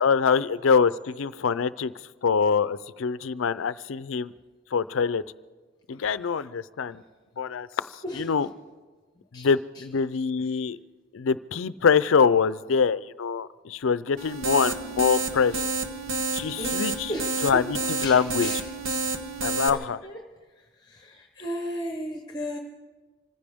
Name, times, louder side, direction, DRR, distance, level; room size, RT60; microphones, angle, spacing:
voice 1, 0.0-1.9 2.2-4.3 4.7-5.2 5.9-7.0 7.4-7.7 8.1-8.5 9.3-10.8 11.1-15.6 16.3-17.1 17.4-18.5 19.4-20.0, left 6 dB, 70° left, 16 dB, 0.5 m, -24 dB
voice 2, 8.0-8.3 9.3-9.5 9.7-9.8 16.6-17.7 18.0-18.6 18.8-19.0 19.6-19.8 20.0-20.2 20.8-22.6, equal, 20° left, 2 dB, 0.9 m, -35 dB
sound 1, 14.2-19.7, right 3 dB, 75° right, 1.1 m, -30 dB
26.0 x 15.0 x 3.5 m, 1.4 s
head